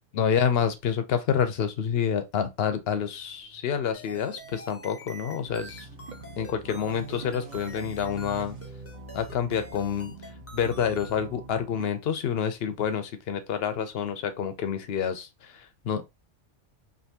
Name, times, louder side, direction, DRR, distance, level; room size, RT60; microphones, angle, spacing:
voice 1, 0.1-5.9 6.4-8.6 9.1-10.1 10.5-16.0, left 7 dB, 65° left, 0.7 m, -28 dB
sound 1, 2.8-10.5, right 4 dB, 70° right, 1.4 m, -48 dB
sound 2, 3.9-11.2, equal, 25° left, 0.3 m, -46 dB
sound 3, 5.4-11.9, right 2 dB, 50° right, 0.5 m, -45 dB
3.3 x 2.6 x 2.8 m
omnidirectional pair, 1.3 m